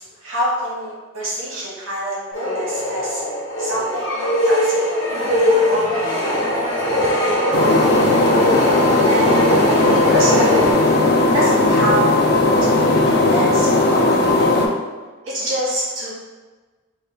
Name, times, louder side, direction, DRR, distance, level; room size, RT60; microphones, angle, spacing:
voice 1, 0.0-3.2 3.6-5.0 5.5-6.6 7.1-8.1 9.1-10.5 11.3-12.1 12.6-14.5 15.2-16.1, right 1 dB, 90° right, -8 dB, 1.2 m, -26 dB
sound 1, 2.3-11.4, left 1 dB, 80° left, 0.7 m, -21 dB
sound 2, 5.1-10.7, right 2 dB, 35° right, 0.4 m, -31 dB
sound 3, 7.5-14.7, left 2 dB, 50° left, 0.4 m, -16 dB
3.1 x 2.2 x 3.3 m, 1.3 s
head